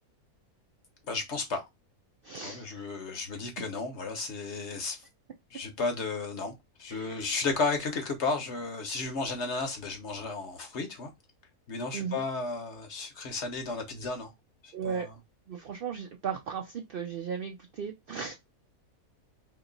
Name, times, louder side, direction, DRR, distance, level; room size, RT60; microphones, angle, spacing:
voice 1, 1.1-1.6 2.4-5.0 5.5-6.5 6.8-11.1 11.7-14.3 14.6-15.1, left 3 dB, 55° left, 1.1 m, -33 dB
voice 2, 2.2-2.9 6.9-7.4 11.9-12.2 14.7-15.1 15.5-18.4, right 7 dB, 80° right, 0.5 m, -36 dB
2.9 x 2.9 x 3.9 m
omnidirectional pair, 1.6 m